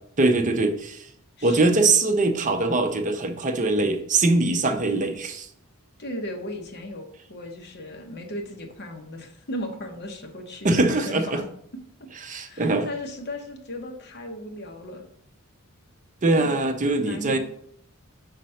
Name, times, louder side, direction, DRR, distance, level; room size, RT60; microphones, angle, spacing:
voice 1, 0.2-1.1 1.4-5.5 10.6-11.4 12.2-12.9 16.2-17.4, right 2 dB, 35° right, 6 dB, 0.6 m, -22 dB
voice 2, 1.4-1.8 6.0-11.4 12.4-15.0 16.4-16.7 16.9-17.4, left 1 dB, 50° left, 3 dB, 1.0 m, -36 dB
5.2 x 4.2 x 5.6 m, 0.66 s
head